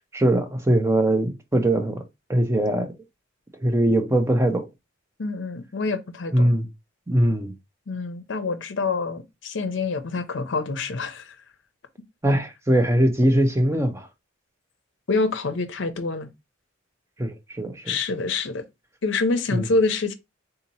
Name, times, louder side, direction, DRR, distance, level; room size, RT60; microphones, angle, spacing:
voice 1, 0.1-2.0 2.3-2.9 3.6-4.7 6.3-6.7 7.1-7.5 12.2-14.1 17.2-17.9 19.5-19.7, right 1 dB, 15° right, 0.5 m, -21 dB
voice 2, 5.2-6.6 7.9-11.4 15.1-16.3 17.9-18.6 19.0-20.2, left 3 dB, 60° left, 0.6 m, -26 dB
3.7 x 2.8 x 2.7 m
head